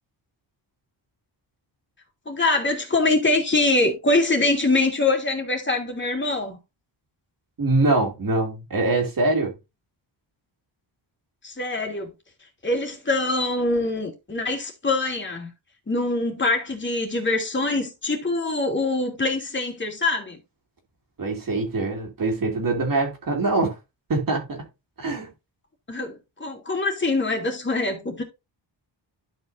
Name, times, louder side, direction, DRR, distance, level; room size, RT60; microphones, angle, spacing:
voice 1, 2.3-6.6 11.4-12.1 12.6-15.5 15.9-20.4 25.9-28.2, left 2 dB, 25° left, 2.9 m, -24 dB
voice 2, 7.6-9.5 21.2-23.7 24.1-24.6 25.0-25.3, right 2 dB, 45° right, 2.6 m, -23 dB
12.0 x 5.4 x 2.7 m
wide cardioid pair, 125°, 46 cm